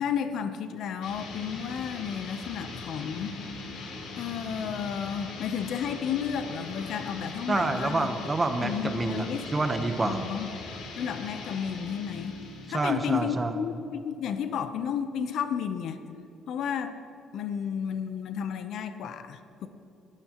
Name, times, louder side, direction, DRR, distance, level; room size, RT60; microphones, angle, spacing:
voice 1, 0.0-3.4 4.2-8.1 8.6-9.4 10.0-10.5 11.0-12.4 12.7-16.0 16.5-17.0 17.3-19.7, left 8 dB, 65° left, 9 dB, 0.7 m, -32 dB
sound 1, 1.0-13.5, left 3 dB, 80° left, 2.7 m, -41 dB
voice 2, 7.5-9.3 9.5-10.2 12.7-13.5, right 2 dB, 20° right, 7 dB, 0.9 m, -27 dB
20.0 x 12.5 x 3.0 m, 2.9 s
cardioid pair, 130°, 0 cm